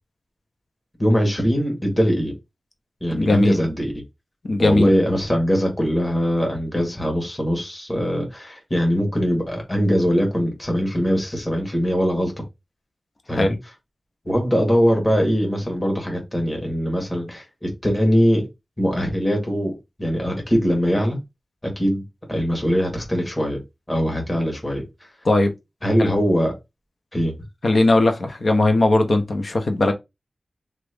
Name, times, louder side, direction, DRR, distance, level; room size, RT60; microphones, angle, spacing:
voice 1, 1.0-2.3 3.0-3.9 4.6-12.3 13.3-13.5 14.2-18.5 18.8-21.2 21.6-22.0 22.3-23.6 23.9-24.8 25.8-26.5 27.1-27.3, equal, 20° left, 1.6 m, -21 dB
voice 2, 3.1-3.6 4.4-4.9 13.3-13.6 25.2-25.5 26.0-26.1 27.6-29.9, left 2 dB, 65° left, 0.8 m, -18 dB
3.0 x 2.5 x 3.4 m
wide cardioid pair, 60°, 0 cm